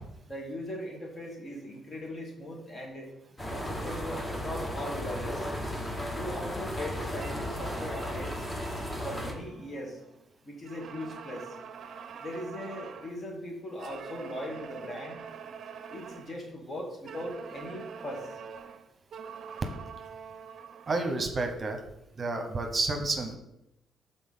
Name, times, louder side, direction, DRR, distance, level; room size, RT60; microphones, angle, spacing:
voice 1, 0.3-3.1 3.5-5.5 6.1-8.5 9.0-10.0 10.4-11.6 12.2-15.2 15.9-18.3, left 1 dB, 40° left, 0 dB, 1.9 m, -39 dB
sound 1, 3.4-9.3, equal, 15° left, 1.1 m, -35 dB
sound 2, 7.1-10.2 10.6-13.2 13.8-16.4 17.1-21.3, right 6 dB, 60° right, 0.5 m, -45 dB
voice 2, 20.9-21.8 22.2-23.4, right 3 dB, 35° right, 5 dB, 1.0 m, -30 dB
6.0 x 4.1 x 5.6 m, 0.85 s
cardioid pair, 90°, 0 cm